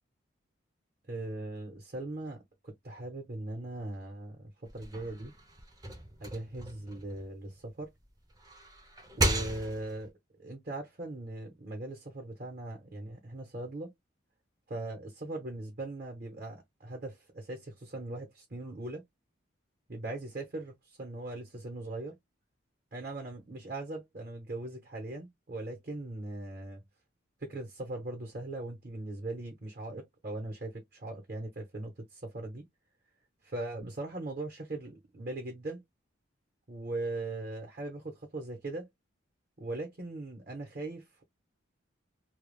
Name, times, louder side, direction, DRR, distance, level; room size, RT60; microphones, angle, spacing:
voice 1, 1.1-5.3 6.2-7.9 9.2-10.1 10.4-13.9 14.7-19.0 19.9-22.2 22.9-26.8 27.4-32.6 33.4-35.8 36.7-38.9 39.6-41.2, right 2 dB, 45° right, 0.8 m, -40 dB
sound 1, 4.7-7.8 8.3-10.1, right 1 dB, 20° right, 0.5 m, -35 dB
2.2 x 2.0 x 3.1 m
head